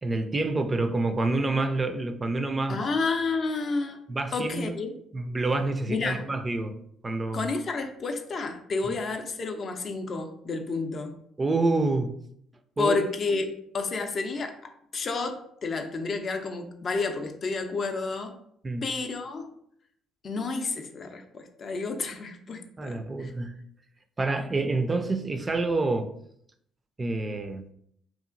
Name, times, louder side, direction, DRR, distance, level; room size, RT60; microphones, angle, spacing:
voice 1, 0.0-2.8 4.1-4.7 5.1-6.8 7.0-7.5 8.9-9.0 11.4-12.1 12.8-13.0 18.6-18.9 22.8-23.5 24.2-26.1 27.0-27.7, right 2 dB, 30° right, 8 dB, 0.3 m, -27 dB
voice 2, 2.7-4.0 4.3-4.9 5.9-6.2 7.3-11.1 12.8-18.4 18.8-19.5 20.2-23.3, left 4 dB, 50° left, 5 dB, 0.4 m, -30 dB
2.8 x 2.4 x 2.5 m, 0.69 s
hypercardioid pair, 55°, 0 cm